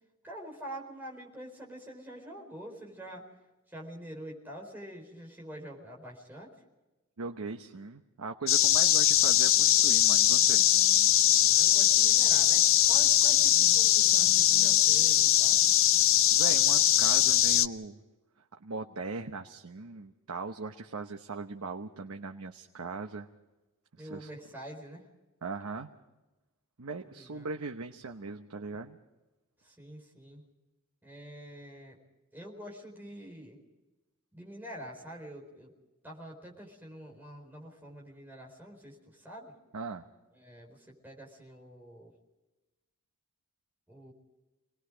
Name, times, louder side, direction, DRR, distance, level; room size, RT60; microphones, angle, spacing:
voice 1, 0.2-3.3 3.7-6.5 11.4-15.6 24.0-25.1 27.0-27.5 29.6-30.4 31.0-32.0 32.3-33.6 34.3-35.7 36.0-39.5 40.3-42.1 43.9-44.1, equal, 10° right, -1 dB, 4.4 m, -46 dB
voice 2, 7.2-10.7 16.3-18.0 18.6-23.3 24.0-24.3 25.4-25.9 26.8-29.0 39.7-40.1, right 4 dB, 85° right, 5 dB, 0.9 m, -39 dB
sound 1, 8.5-17.7, left 12 dB, 65° left, 0.6 m, -22 dB
27.5 x 20.0 x 5.1 m, 1.1 s
head